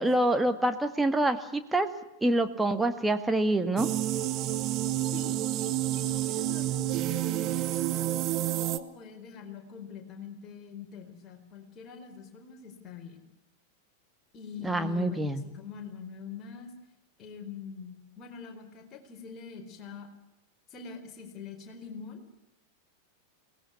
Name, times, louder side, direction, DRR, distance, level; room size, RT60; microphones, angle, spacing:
voice 1, 0.0-1.9 2.2-3.9 14.6-15.4, right 1 dB, 5° right, 7 dB, 1.9 m, -26 dB
sound 1, 3.8-8.8, right 14 dB, 35° right, 1.2 m, -29 dB
voice 2, 5.1-8.1 8.6-13.2 14.3-16.7 17.2-20.1 20.7-22.2, left 6 dB, 30° left, 4 dB, 4.5 m, -44 dB
23.0 x 19.0 x 8.1 m, 0.92 s
figure-of-eight pair, 90°, 0 cm